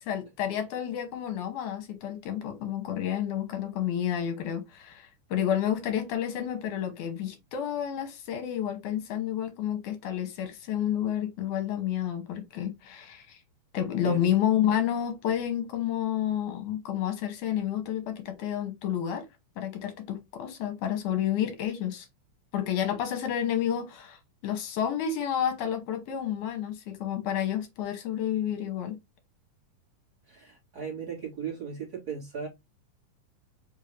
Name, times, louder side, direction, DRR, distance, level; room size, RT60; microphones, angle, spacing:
voice 1, 0.0-13.4 13.7-19.3 19.6-22.1 22.5-29.0, left 10 dB, 75° left, 2.4 m, -30 dB
voice 2, 30.3-32.5, right 7 dB, 35° right, 1.7 m, -36 dB
5.4 x 2.7 x 3.1 m
omnidirectional pair, 3.8 m